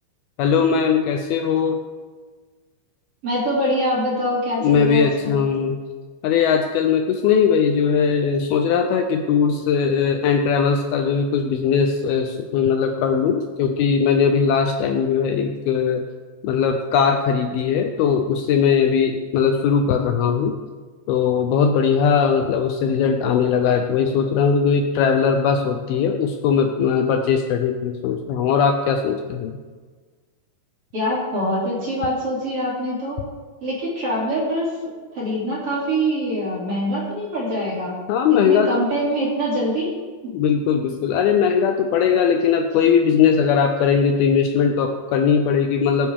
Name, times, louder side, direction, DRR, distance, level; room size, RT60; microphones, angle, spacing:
voice 1, 0.4-1.8 4.6-5.8 6.2-16.0 16.4-20.6 21.1-29.6 38.1-38.7 40.3-46.1, left 6 dB, 80° left, 5 dB, 2.2 m, -19 dB
voice 2, 3.2-5.4 30.9-33.2 33.6-34.8 35.1-38.0 38.3-39.9, equal, 35° right, -6 dB, 3.4 m, -24 dB
19.0 x 9.8 x 3.6 m, 1.5 s
omnidirectional pair, 5.2 m